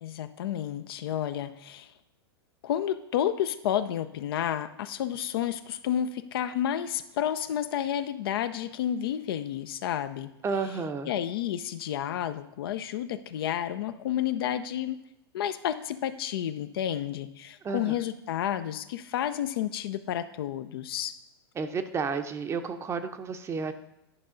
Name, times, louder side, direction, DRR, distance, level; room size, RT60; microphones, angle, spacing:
voice 1, 0.0-1.9 2.6-10.3 11.0-15.0 15.3-21.1, left 10 dB, 65° left, 11 dB, 0.6 m, -31 dB
voice 2, 10.4-11.1 17.6-18.0 21.6-23.7, right 5 dB, 20° right, 8 dB, 0.7 m, -31 dB
11.0 x 5.5 x 3.8 m, 0.85 s
hypercardioid pair, 105°, 13 cm